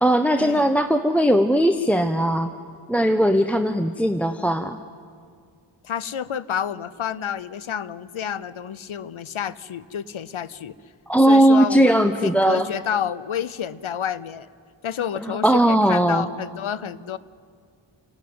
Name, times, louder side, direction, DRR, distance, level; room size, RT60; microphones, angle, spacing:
voice 1, 0.0-2.5 2.9-4.8 11.1-12.7 15.2-16.3, right 1 dB, 5° left, 8 dB, 0.8 m, -18 dB
voice 2, 5.8-10.7 11.3-11.9 12.2-14.5 14.8-17.2, left 8 dB, 85° left, 17 dB, 0.7 m, -29 dB
29.0 x 11.5 x 9.4 m, 2.1 s
wide cardioid pair, 50°, 48 cm